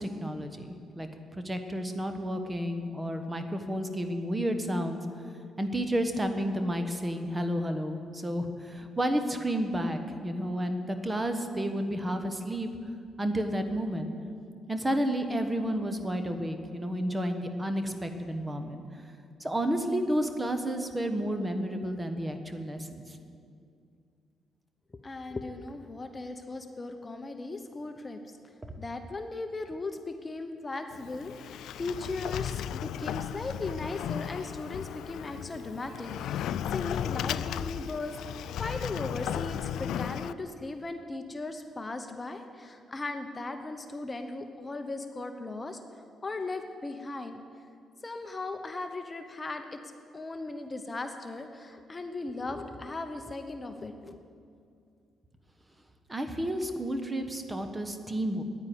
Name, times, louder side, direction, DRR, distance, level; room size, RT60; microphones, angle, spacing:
voice 1, 0.0-5.0 5.6-12.7 13.2-14.1 14.7-18.8 19.4-23.2 56.1-58.4, equal, 15° right, 7 dB, 1.1 m, -31 dB
voice 2, 25.0-28.2 28.8-45.8 46.2-47.4 48.0-49.8 50.1-54.2, left 3 dB, 25° left, 6 dB, 0.8 m, -37 dB
Sliding door, 30.9-40.3, left 10 dB, 80° left, 0.3 m, -35 dB
9.7 x 9.5 x 9.5 m, 2.4 s
cardioid pair, 90°, 0 cm